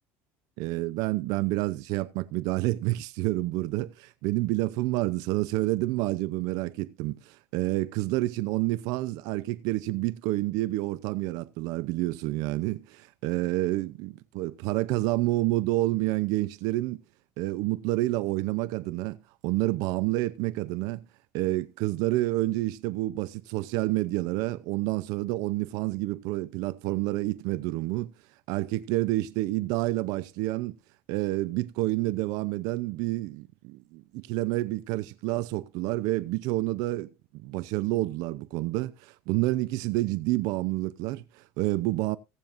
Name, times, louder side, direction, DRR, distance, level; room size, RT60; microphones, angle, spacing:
voice 1, 0.6-17.0 17.4-19.2 19.4-21.0 21.3-28.1 28.5-30.8 31.1-37.1 37.4-42.2, right 18 dB, 75° right, 0.6 m, -29 dB
18.0 x 8.8 x 2.6 m
supercardioid pair, 110°, 6 cm